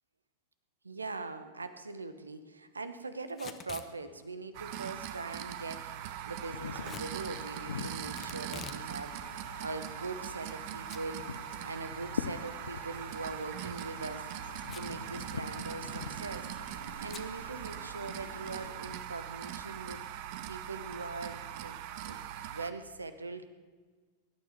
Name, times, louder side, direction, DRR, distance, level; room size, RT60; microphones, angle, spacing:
voice 1, 0.8-11.3 11.6-14.3 14.7-16.5 17.0-20.0 20.5-23.5, right 3 dB, 80° right, 11 dB, 1.1 m, -42 dB
Packing tape duct tape / Tearing, 3.3-3.9 6.8-7.1 8.2-8.9 9.2-9.3 10.0-10.6 10.9-11.0 11.4-11.5 13.5-13.7 14.6-15.0 15.3-15.4 15.7-16.0 17.1-17.3, left 8 dB, 25° left, 1.1 m, -46 dB
sound 1, 4.5-22.7, right 11 dB, 45° right, 0.9 m, -41 dB
Wind, 6.3-18.7, left 6 dB, 70° left, 0.5 m, -45 dB
23.0 x 12.0 x 4.5 m, 1.5 s
figure-of-eight pair, 90°, 0 cm